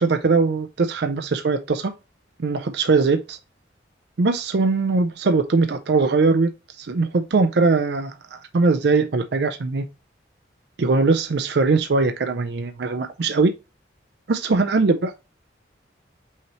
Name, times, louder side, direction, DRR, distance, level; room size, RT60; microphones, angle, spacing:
voice 1, 0.0-1.9 2.4-3.4 4.2-6.5 6.8-9.9 10.8-13.5 14.3-15.1, right 4 dB, 65° right, 0.5 m, -21 dB
5.6 x 3.1 x 2.8 m
head